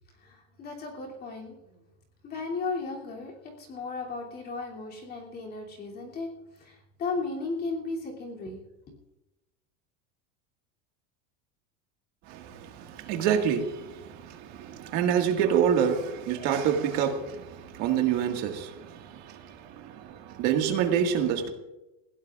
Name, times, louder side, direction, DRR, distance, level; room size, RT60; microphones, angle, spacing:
voice 1, 0.2-1.6 2.2-6.3 6.6-8.6 8.9-9.0, left 3 dB, 25° left, 3.0 m, -35 dB
voice 2, 12.3-21.5, right 8 dB, 45° right, 1.8 m, -27 dB
20.5 x 16.0 x 2.5 m
supercardioid pair, 175°, 38 cm